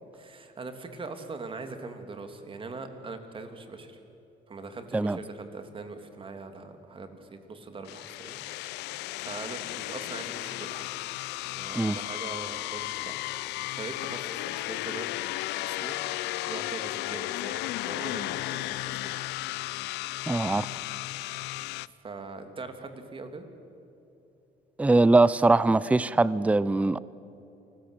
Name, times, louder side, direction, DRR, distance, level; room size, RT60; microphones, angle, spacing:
voice 1, 0.1-4.0 4.5-8.4 9.2-10.9 11.4-13.2 13.8-15.1 15.6-16.0 16.5-19.2 21.9-23.4, right 3 dB, 30° right, 7 dB, 2.9 m, -41 dB
sound 1, 7.9-21.9, left 19 dB, 85° left, 0.5 m, -34 dB
voice 2, 20.3-20.7 24.8-27.0, right 2 dB, 10° right, 18 dB, 0.5 m, -22 dB
29.0 x 20.5 x 8.3 m, 2.8 s
cardioid pair, 110°, 17 cm